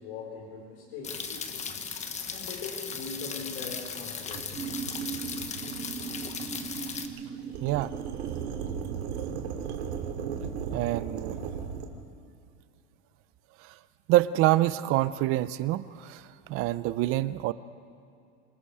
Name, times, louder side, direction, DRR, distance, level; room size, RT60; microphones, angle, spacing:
voice 1, 0.0-1.7 2.1-4.6, left 4 dB, 65° left, -4 dB, 4.7 m, -41 dB
sound 1, 1.0-7.1, left 6 dB, 20° left, 1.3 m, -37 dB
sound 2, 4.3-11.9, right 7 dB, 80° right, 2.8 m, -37 dB
sound 3, 4.6-9.6, right 6 dB, 20° right, 1.9 m, -40 dB
voice 2, 10.7-11.4 14.1-16.2 16.5-17.5, right 15 dB, 40° right, 16 dB, 0.7 m, -26 dB
27.5 x 20.0 x 5.0 m, 2.5 s
supercardioid pair, 140°, 33 cm